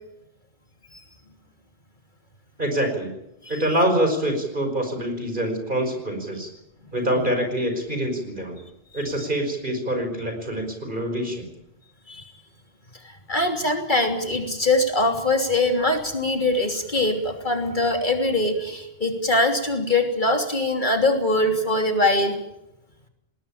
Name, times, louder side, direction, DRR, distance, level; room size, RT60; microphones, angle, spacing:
voice 1, 2.6-3.1 3.5-6.5 6.9-8.6 8.9-11.5, right 1 dB, 50° right, 5 dB, 5.4 m, -25 dB
voice 2, 13.3-22.3, left 2 dB, 50° left, 4 dB, 3.3 m, -22 dB
20.0 x 19.5 x 8.8 m, 0.88 s
omnidirectional pair, 1.1 m